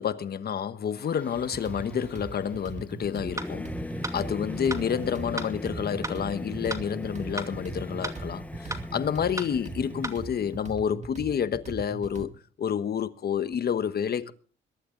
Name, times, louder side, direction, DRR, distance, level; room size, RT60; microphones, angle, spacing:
voice 1, 0.0-3.7 4.1-12.3 12.6-14.3, left 8 dB, 50° left, 1.2 m, -29 dB
Singing / Musical instrument, 1.0-10.6, left 1 dB, 5° left, 0.9 m, -39 dB
sound 1, 1.3-12.3, right 4 dB, 35° right, 2.1 m, -41 dB
sound 2, 3.4-3.5 4.0-4.2 4.7-4.8 5.4-5.5 6.0-6.2 6.7-6.8 7.4-7.5 8.0-8.2 8.7-8.8 9.4-9.5 10.0-10.2, right 2 dB, 15° right, 2.5 m, -33 dB
22.0 x 12.0 x 3.9 m
cardioid pair, 90°, 20 cm